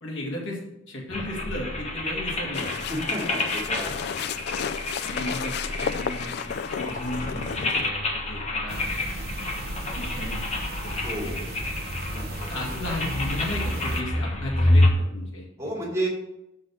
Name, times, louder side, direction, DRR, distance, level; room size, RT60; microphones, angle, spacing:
voice 1, 0.0-0.6 0.9-2.7 5.0-6.4 6.7-8.8 10.0-10.4 10.8-11.5 12.5-15.4, left 1 dB, 85° left, -4 dB, 2.3 m, -34 dB
sound 1, 1.1-14.9, left 1 dB, 35° left, 1.3 m, -28 dB
sound 2, 2.5-7.9, left 7 dB, 60° left, 0.3 m, -32 dB
voice 2, 2.9-3.9 11.0-11.3 12.1-12.2 15.6-16.1, right 1 dB, 15° right, -3 dB, 2.7 m, -31 dB
sound 3, 8.7-14.0, right 1 dB, 55° right, 0.8 m, -36 dB
6.4 x 6.1 x 6.6 m, 0.87 s
head